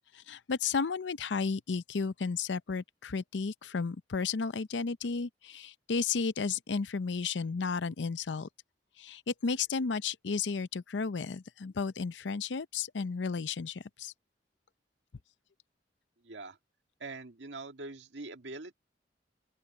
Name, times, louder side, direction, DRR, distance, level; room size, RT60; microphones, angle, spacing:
voice 1, 0.1-8.5 9.0-14.1, left 5 dB, 90° left, 0.6 m, -33 dB
voice 2, 16.2-16.6 17.0-18.8, right 3 dB, 85° right, 1.8 m, -43 dB
open air
head